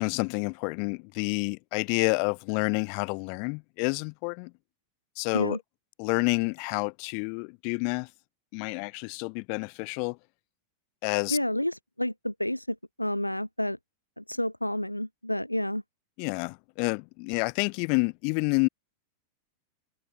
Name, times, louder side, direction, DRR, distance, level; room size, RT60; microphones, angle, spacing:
voice 1, 0.0-4.5 5.2-5.6 6.0-8.1 8.5-10.2 11.0-11.4 16.2-18.7, left 40 dB or more, 45° left, 5.0 m, -29 dB
voice 2, 11.3-13.8 14.2-15.8, left 1 dB, 90° left, 1.1 m, -30 dB
figure-of-eight pair, 90°, 0 cm